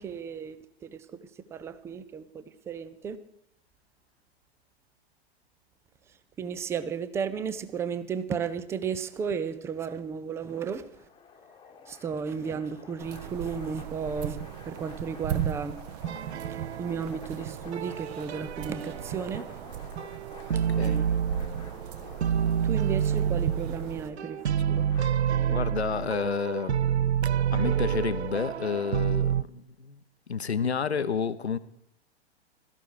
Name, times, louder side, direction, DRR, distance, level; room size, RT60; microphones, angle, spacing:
voice 1, 0.0-3.2 6.1-11.1 11.9-19.6 20.5-21.0 22.6-24.9, right 6 dB, 10° right, 0.5 m, -34 dB
sound 1, 10.4-25.1, left 6 dB, 15° left, 1.3 m, -52 dB
sound 2, 13.0-24.1, right 9 dB, 40° right, 1.1 m, -37 dB
sound 3, 16.1-17.3 17.7-19.6 20.0-21.9 22.2-29.4, right 8 dB, 80° right, 0.5 m, -28 dB
voice 2, 20.5-21.0 25.5-26.8 27.5-30.0 30.3-31.6, left 6 dB, 75° left, 0.9 m, -30 dB
16.5 x 13.5 x 4.8 m
figure-of-eight pair, 105°, 33 cm